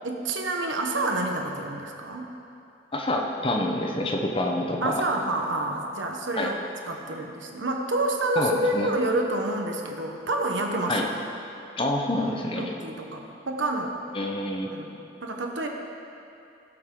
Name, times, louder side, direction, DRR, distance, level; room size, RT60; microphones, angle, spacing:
voice 1, 0.0-2.3 4.8-6.6 6.9-11.1 12.6-14.0 14.7-15.7, right 2 dB, 80° right, 2 dB, 1.2 m, -28 dB
voice 2, 2.9-5.0 6.4-6.5 8.4-8.9 10.9-11.0 11.8-12.7 14.1-14.7, left 1 dB, 30° left, 1 dB, 1.0 m, -27 dB
16.5 x 7.9 x 3.9 m, 2.8 s
head